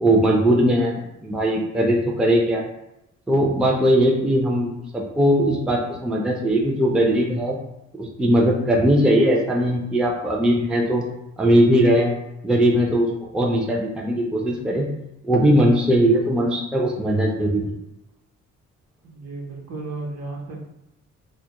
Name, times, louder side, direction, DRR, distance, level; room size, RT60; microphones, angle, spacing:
voice 1, 0.0-2.6 3.3-7.6 8.0-11.0 11.4-12.1 12.4-14.9 15.2-17.8, equal, 5° right, -1 dB, 0.3 m, -19 dB
voice 2, 19.0-20.7, right 3 dB, 55° right, 0 dB, 0.7 m, -34 dB
2.2 x 2.1 x 2.8 m, 0.89 s
cardioid pair, 90°, 30 cm